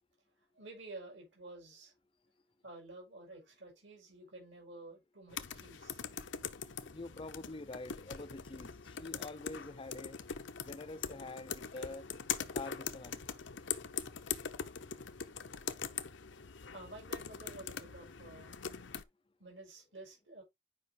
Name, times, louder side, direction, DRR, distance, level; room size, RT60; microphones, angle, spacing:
voice 1, 0.5-1.9 2.6-6.0 16.7-18.6 19.4-20.4, right 2 dB, 65° right, 6.5 m, -51 dB
sound 1, 5.3-19.0, left 7 dB, 65° left, 0.8 m, -42 dB
voice 2, 6.9-10.2 10.7-12.1 12.5-13.2 16.6-16.7, left 2 dB, 25° left, 0.5 m, -46 dB
9.8 x 5.4 x 3.2 m
head